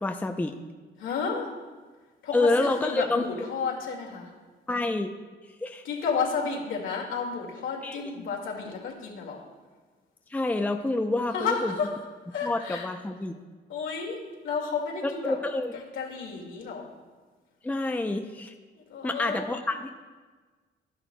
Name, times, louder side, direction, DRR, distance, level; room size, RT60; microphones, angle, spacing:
voice 1, 0.0-0.6 2.3-3.3 4.7-5.1 5.6-5.9 7.8-8.0 10.3-11.7 12.4-13.4 15.0-15.7 17.6-18.5 19.0-19.9, left 2 dB, 10° left, 5 dB, 0.5 m, -27 dB
voice 2, 1.0-1.5 2.2-4.3 5.8-9.4 11.3-11.9 12.3-12.9 13.7-14.2 14.4-15.4 16.0-16.9 18.7-19.7, left 5 dB, 75° left, -1 dB, 2.1 m, -31 dB
12.0 x 10.0 x 2.2 m, 1.4 s
cardioid pair, 90°, 20 cm